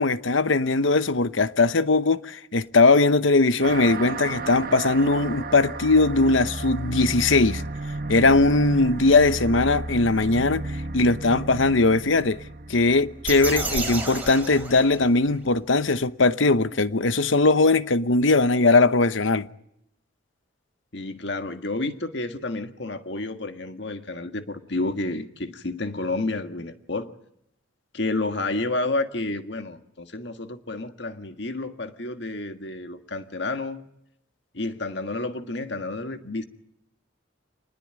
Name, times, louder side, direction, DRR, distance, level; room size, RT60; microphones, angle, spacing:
voice 1, 0.0-7.6 8.1-10.6 10.9-12.4 12.7-19.5, left 3 dB, 75° left, 0.9 m, -20 dB
sound 1, 3.6-14.6, right 2 dB, 45° right, 1.1 m, -34 dB
sound 2, 13.2-15.4, right 3 dB, 10° right, 4.9 m, -31 dB
voice 2, 20.9-27.1 27.9-33.9 34.5-36.4, left 2 dB, 60° left, 1.7 m, -30 dB
27.5 x 20.0 x 8.8 m
head